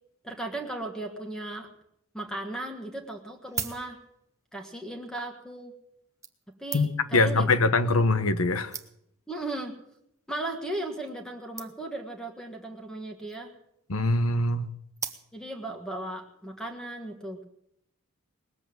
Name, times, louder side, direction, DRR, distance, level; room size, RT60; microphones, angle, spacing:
voice 1, 0.2-1.7 2.1-4.0 4.5-5.7 6.6-7.5 7.8-8.0 9.3-9.8 10.3-13.5 15.3-17.4, right 1 dB, 5° left, 3 dB, 1.6 m, -36 dB
sound 1, 3.2-4.4 5.3-5.4 6.2-7.2 8.0-8.1 8.4-8.5 8.7-9.2 10.0-10.2 10.5-10.6 10.8-10.9 11.1-11.2 11.6-12.0 13.1-13.5 15.0-15.6 16.2-16.3, right 6 dB, 15° right, 0.9 m, -39 dB
voice 2, 6.7-8.7 13.9-14.7, left 2 dB, 80° left, 13 dB, 1.1 m, -23 dB
20.0 x 8.0 x 9.1 m, 0.75 s
head